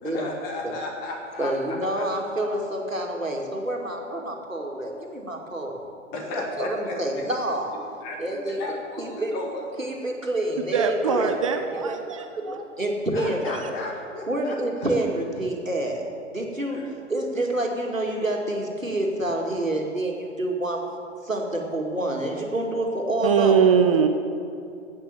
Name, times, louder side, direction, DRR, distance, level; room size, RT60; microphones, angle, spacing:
voice 1, 0.0-2.1 6.1-7.0 8.0-9.6 11.0-11.3 12.4-12.5 13.1-14.9 16.7-16.9, left 2 dB, 25° left, 0 dB, 1.9 m, -34 dB
voice 2, 1.4-5.8 6.3-7.7 8.2-8.6 9.0-9.4 9.8-12.0 12.3-12.4 12.8-13.5 14.3-16.0 16.3-16.8 17.1-20.8 21.2-23.7, right 1 dB, 85° right, 1 dB, 2.5 m, -28 dB
voice 3, 10.7-12.6 23.2-24.1, right 7 dB, 25° right, 6 dB, 0.5 m, -21 dB
14.5 x 8.9 x 7.1 m, 2.6 s
figure-of-eight pair, 120°, 38 cm